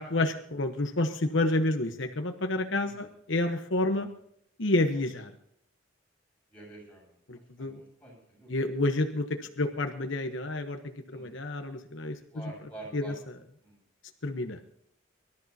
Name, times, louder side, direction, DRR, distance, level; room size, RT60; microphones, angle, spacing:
voice 1, 0.0-4.1 4.6-5.3 7.3-7.8 8.5-12.2 12.9-13.1 14.2-14.6, left 2 dB, 65° left, 6 dB, 1.1 m, -29 dB
voice 2, 6.5-7.2 7.6-8.6 9.4-9.5 11.0-11.4 12.3-13.2 13.6-13.8, right 2 dB, 5° left, -4 dB, 7.7 m, -48 dB
25.0 x 13.0 x 2.8 m, 0.72 s
head